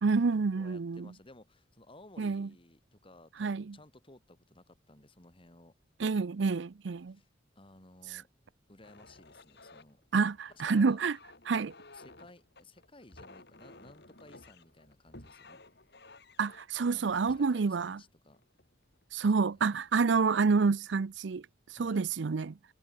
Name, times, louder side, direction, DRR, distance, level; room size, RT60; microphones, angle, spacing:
voice 1, 0.0-1.1 2.2-2.5 3.4-3.8 6.0-7.2 8.1-8.2 10.1-11.2 11.5-11.7 16.4-18.0 19.1-22.6, right 4 dB, 80° right, 0.5 m, -28 dB
voice 2, 0.6-5.7 7.1-7.3 7.6-8.3 8.7-10.0 10.5-11.0 11.9-15.6 16.9-18.4 19.4-19.9 21.7-22.1, left 2 dB, 30° left, 2.8 m, -57 dB
sound 1, 8.8-19.0 19.7-20.0 20.4-20.9, left 2 dB, 65° left, 6.5 m, -55 dB
head